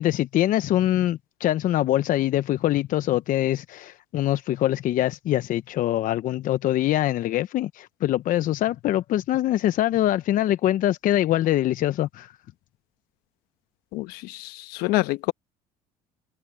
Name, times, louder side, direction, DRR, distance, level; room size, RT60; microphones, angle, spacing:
voice 1, 0.0-12.3, left 13 dB, 55° left, 0.9 m, -23 dB
voice 2, 13.9-15.3, left 20 dB, 75° left, 1.2 m, -27 dB
supercardioid pair, 80°, 16 cm